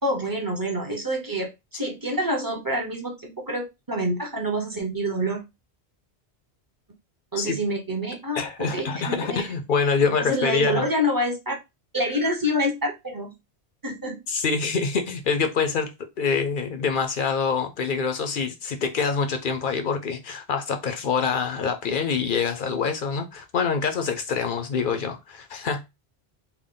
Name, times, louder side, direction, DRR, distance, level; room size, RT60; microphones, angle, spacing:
voice 1, 0.0-5.4 7.3-9.4 10.2-11.5 11.9-13.3 13.8-14.2, equal, 20° right, 0.8 m, -27 dB
voice 2, 8.3-10.9 14.3-25.8, left 5 dB, 60° left, 0.7 m, -25 dB
3.5 x 2.2 x 3.6 m
omnidirectional pair, 1.1 m